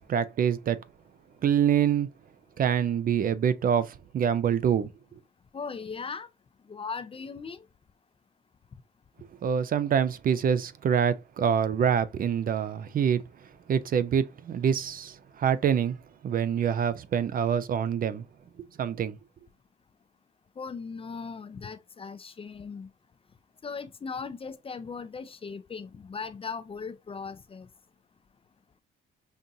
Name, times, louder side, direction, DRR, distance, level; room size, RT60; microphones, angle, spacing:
voice 1, 0.1-0.8 1.4-2.1 2.6-4.9 9.4-13.2 13.7-16.0 16.2-18.2 18.8-19.2, right 8 dB, 45° right, 0.4 m, -25 dB
voice 2, 5.5-6.3 6.7-7.7 20.6-22.9 23.6-27.7, left 5 dB, 30° left, 0.4 m, -38 dB
5.3 x 2.5 x 2.7 m
cardioid pair, 90°, 20 cm